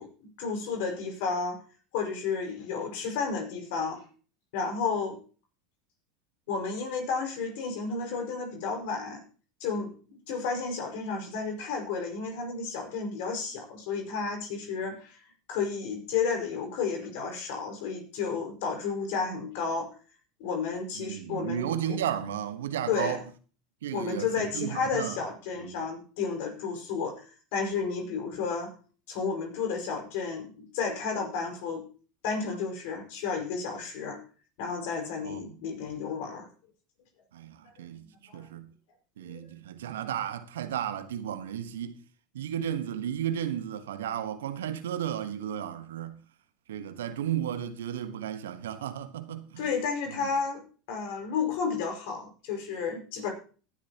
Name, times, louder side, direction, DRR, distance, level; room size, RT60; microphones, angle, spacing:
voice 1, 0.0-1.6 1.9-4.0 4.5-5.2 6.5-9.2 9.6-15.2 15.5-19.9 20.4-22.0 22.9-23.2 23.9-28.8 29.1-31.8 32.2-34.2 34.6-36.5 38.3-38.5 39.2-39.4 49.6-53.3, left 5 dB, 65° left, 5.2 m, -32 dB
voice 2, 20.9-23.2 23.8-25.2 25.6-25.7 35.2-35.6 37.3-38.1 38.3-38.7 39.2-41.9 42.3-46.2 46.7-49.7 50.2-50.3, right 10 dB, 75° right, 1.3 m, -34 dB
17.5 x 12.0 x 2.9 m
hypercardioid pair, 80°, 0 cm